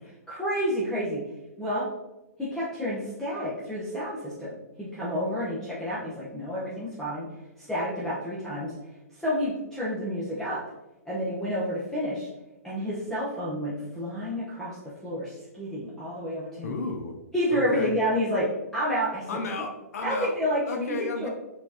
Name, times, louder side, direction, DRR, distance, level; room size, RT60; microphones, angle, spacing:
voice 1, 0.3-1.2 1.6-1.9 2.4-4.5 4.8-7.3 7.6-8.7 9.1-10.6 11.0-12.3 12.6-16.7 17.3-18.5 18.7-19.2 20.0-21.3, equal, 5° left, -9 dB, 0.9 m, -29 dB
voice 2, 16.6-17.1 17.5-17.9 19.3-20.3 20.7-21.3, left 3 dB, 70° left, 4 dB, 0.6 m, -33 dB
4.5 x 4.0 x 2.8 m, 1.0 s
hypercardioid pair, 135°, 9 cm